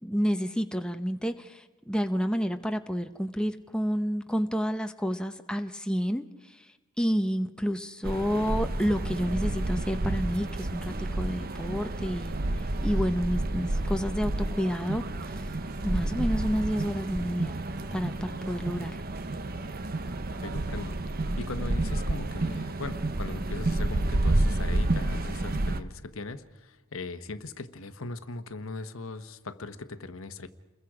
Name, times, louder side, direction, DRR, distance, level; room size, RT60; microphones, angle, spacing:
voice 1, 0.0-15.5 15.8-17.6 17.9-19.0, equal, 5° left, 0.9 m, -30 dB
sound 1, 8.0-25.8, right 2 dB, 45° right, 1.0 m, -30 dB
sound 2, 15.7-20.7, right 1 dB, 80° right, 6.5 m, -57 dB
voice 2, 20.4-21.0 21.4-30.5, left 3 dB, 65° left, 1.1 m, -39 dB
29.0 x 21.5 x 5.0 m
head